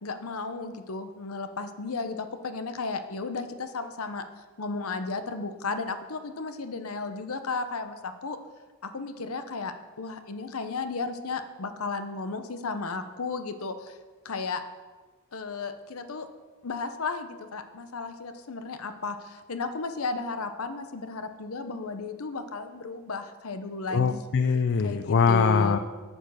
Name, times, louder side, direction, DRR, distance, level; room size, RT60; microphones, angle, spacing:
voice 1, 0.0-4.2 4.6-8.4 8.8-14.0 14.2-14.6 15.3-16.3 16.6-24.2 24.8-25.8, left 4 dB, 85° left, 9 dB, 0.8 m, -34 dB
voice 2, 23.9-25.8, left 5 dB, 55° left, 10 dB, 0.4 m, -22 dB
8.8 x 7.1 x 6.3 m, 1.4 s
head